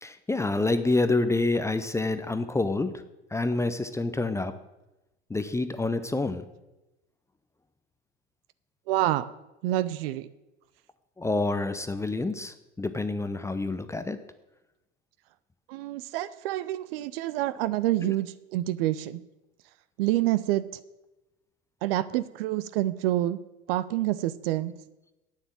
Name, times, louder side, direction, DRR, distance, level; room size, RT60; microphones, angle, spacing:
voice 1, 0.0-3.0 3.3-4.5 5.3-6.5 11.2-14.2 18.0-18.1, left 2 dB, 10° left, 11 dB, 0.6 m, -27 dB
voice 2, 8.9-9.3 9.6-10.3 15.7-19.2 20.0-20.7 21.8-23.4 23.7-24.7, right 15 dB, 55° right, 15 dB, 0.7 m, -27 dB
9.1 x 7.3 x 8.8 m, 0.99 s
figure-of-eight pair, 75°, 36 cm